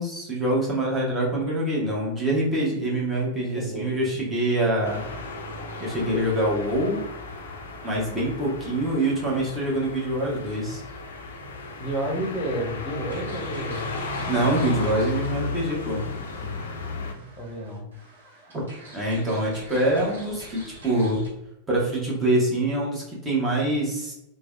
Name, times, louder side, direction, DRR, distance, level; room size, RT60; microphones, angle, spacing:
voice 1, 0.0-5.0 5.8-7.0 7.8-10.8 14.3-16.0 18.9-21.2 21.7-24.1, right 1 dB, 15° right, -4 dB, 1.0 m, -25 dB
voice 2, 3.4-3.9 11.8-13.9 16.4-16.7 17.4-17.9, right 1 dB, 25° left, -1 dB, 0.8 m, -31 dB
sound 1, 4.8-17.1, left 3 dB, 60° left, 0.4 m, -34 dB
sound 2, 13.1-21.3, right 1 dB, 65° right, 1.1 m, -46 dB
3.1 x 2.2 x 2.4 m, 0.86 s
figure-of-eight pair, 90°, 0 cm